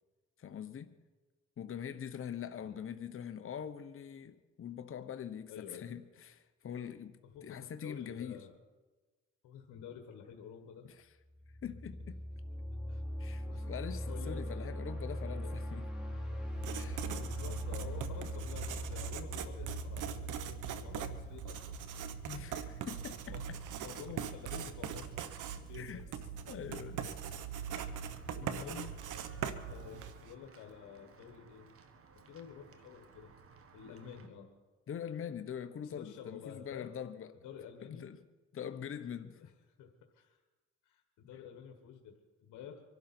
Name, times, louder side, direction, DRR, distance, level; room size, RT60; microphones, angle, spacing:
voice 1, 0.4-1.0 1.6-8.4 10.8-10.9 11.6-12.2 13.2-15.9 16.7-17.0 22.3-23.6 25.8-26.0 26.5-27.1 34.9-37.3 37.9-38.2 38.5-39.5, left 8 dB, 45° left, 1.0 m, -43 dB
voice 2, 5.5-5.9 7.2-8.6 9.4-10.9 12.9-13.0 13.4-13.7 14.1-14.7 15.3-15.6 16.3-16.5 17.2-21.9 23.3-23.4 23.8-26.0 27.3-28.0 28.3-28.9 29.7-31.7 32.3-33.3 33.7-34.5 35.8-36.9 37.4-38.1 39.4-39.5 39.8-40.4 40.8-42.8, left 8 dB, 85° left, 1.6 m, -50 dB
sound 1, 11.3-22.1, equal, ahead, 3.4 m, -41 dB
Writing, 16.5-30.3, right 8 dB, 80° right, 1.1 m, -41 dB
Walk footsteps / Bell, 27.6-34.3, right 4 dB, 50° right, 1.6 m, -59 dB
24.5 x 12.0 x 4.4 m
cardioid pair, 90°, 30 cm